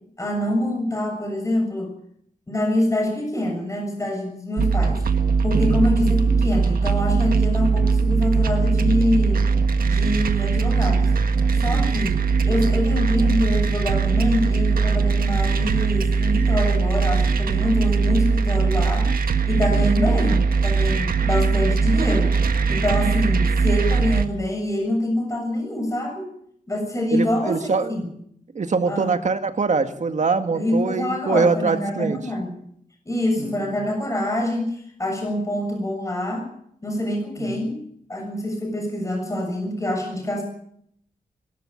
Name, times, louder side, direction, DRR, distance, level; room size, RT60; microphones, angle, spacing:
voice 1, 0.2-1.9 2.5-5.0 5.4-9.4 9.8-11.1 11.5-22.3 22.7-26.3 26.7-27.6 27.9-28.1 28.9-29.1 30.5-32.5 33.1-36.5 36.8-37.8 38.1-40.4, left 1 dB, 20° left, 3 dB, 7.1 m, -25 dB
sound 1, 4.6-24.2, right 4 dB, 80° right, 1.5 m, -20 dB
voice 2, 5.5-5.9 11.7-12.1 19.6-19.9 27.1-27.9 28.5-32.2 33.4-33.7 37.4-37.6, right 4 dB, 55° right, 7 dB, 2.0 m, -24 dB
23.0 x 13.0 x 8.6 m, 0.69 s
wide cardioid pair, 115°, 15 cm